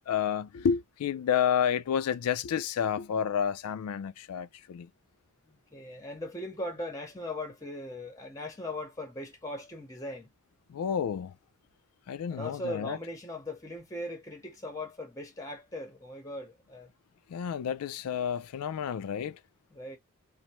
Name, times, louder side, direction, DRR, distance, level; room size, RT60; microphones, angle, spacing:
voice 1, 0.0-4.9 10.7-11.4 12.1-13.0 17.3-19.4, left 8 dB, 85° left, 0.3 m, -30 dB
voice 2, 5.5-10.3 12.3-16.9 19.7-20.0, left 1 dB, 15° left, 0.7 m, -39 dB
3.1 x 2.0 x 2.9 m
head